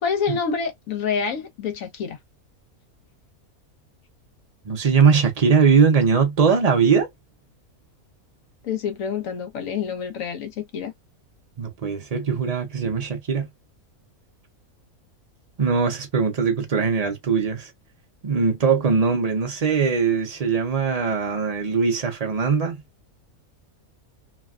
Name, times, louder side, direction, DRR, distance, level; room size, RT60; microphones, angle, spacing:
voice 1, 0.0-2.2 8.6-10.9, left 6 dB, 65° left, 1.2 m, -27 dB
voice 2, 4.6-7.1 11.6-13.5 15.6-17.7 18.2-22.8, right 5 dB, 45° right, 0.5 m, -20 dB
3.2 x 2.2 x 2.3 m
omnidirectional pair, 1.5 m